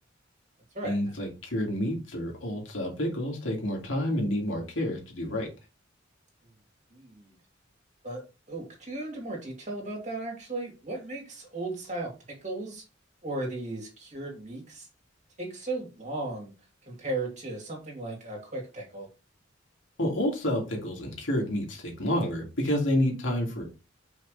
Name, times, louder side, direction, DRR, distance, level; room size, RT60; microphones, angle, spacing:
voice 1, 0.8-5.5 20.0-23.6, left 1 dB, 75° left, 0 dB, 2.5 m, -29 dB
voice 2, 6.9-7.3 8.0-12.1 12.4-12.8 13.2-14.9 15.4-16.5 16.9-19.1, right 2 dB, 40° right, -1 dB, 2.9 m, -36 dB
6.1 x 5.5 x 3.3 m, 0.30 s
head